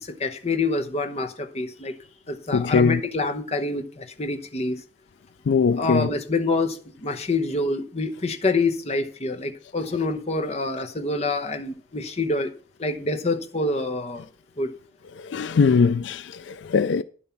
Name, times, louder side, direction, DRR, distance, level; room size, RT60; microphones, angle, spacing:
voice 1, 0.0-1.9 2.3-4.8 5.8-12.5 12.8-14.3 14.6-14.7, left 3 dB, 35° left, 0.9 m, -26 dB
voice 2, 2.5-3.0 5.5-6.1 15.2-17.0, left 5 dB, 80° left, 0.4 m, -21 dB
10.0 x 7.0 x 5.8 m
head